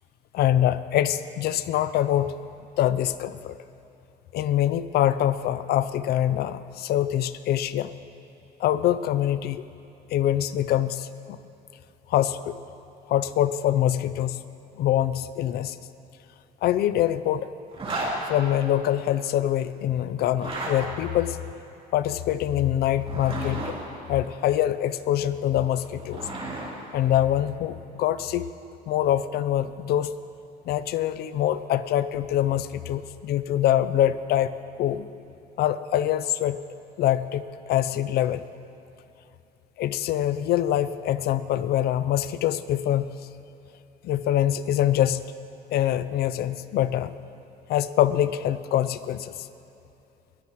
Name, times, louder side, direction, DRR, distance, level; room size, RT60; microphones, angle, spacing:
voice 1, 0.3-2.3 2.8-3.5 4.3-7.9 8.6-9.7 10.1-11.4 12.1-12.6 13.1-14.4 14.8-15.8 16.6-17.5 18.3-21.4 21.9-23.6 24.1-26.2 26.9-28.5 28.9-30.1 30.7-35.1 35.6-36.6 37.0-38.4 39.8-43.0 44.0-45.2 45.7-47.1 47.7-49.5, left 12 dB, 70° left, 14 dB, 0.5 m, -24 dB
Zipper (clothing), 17.7-18.1 20.3-20.7 22.9-23.7 25.6-26.7, right 2 dB, 35° right, 3.5 m, -33 dB
21.0 x 14.0 x 3.1 m, 2.9 s
cardioid pair, 110°, 17 cm